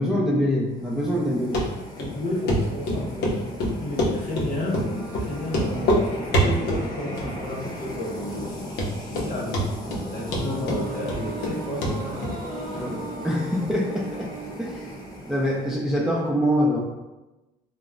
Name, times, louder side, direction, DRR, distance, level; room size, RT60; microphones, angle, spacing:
voice 1, 0.0-1.6 9.1-9.3 12.7-12.9 13.2-14.3 14.6-14.9 15.3-16.8, equal, 5° right, -3 dB, 0.3 m, -24 dB
sound 1, 0.6-16.0, left 1 dB, 25° left, 0.7 m, -38 dB
Run, 1.5-1.7 2.0-2.1 2.5-2.6 2.9-3.4 3.6-4.5 4.7-4.9 5.1-5.2 5.5-6.0 6.3-6.8 7.2-7.6 7.9-8.0 8.4-8.5 8.8-9.3 9.5-10.0 10.3-11.5 11.8-11.9 12.2-12.3, equal, 80° left, 0.6 m, -24 dB
voice 2, 2.0-3.5 3.8-8.7 9.0-9.6 10.1-12.5 12.7-13.1, left 1 dB, 55° left, -4 dB, 1.0 m, -32 dB
sound 2, 4.5-15.9, right 3 dB, 20° right, 0.7 m, -40 dB
3.0 x 2.0 x 2.4 m, 1.1 s
cardioid pair, 110°, 17 cm